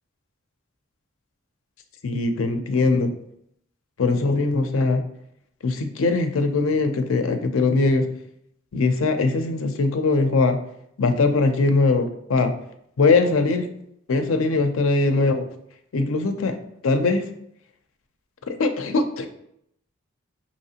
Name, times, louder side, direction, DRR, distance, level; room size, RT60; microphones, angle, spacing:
voice 1, 2.0-3.1 4.0-5.0 5.6-8.1 8.7-10.6 11.0-12.5 13.0-13.7 14.1-15.5 15.9-16.6 16.8-17.3 18.5-19.3, left 3 dB, 85° left, 7 dB, 0.5 m, -21 dB
4.8 x 3.0 x 2.8 m, 0.73 s
head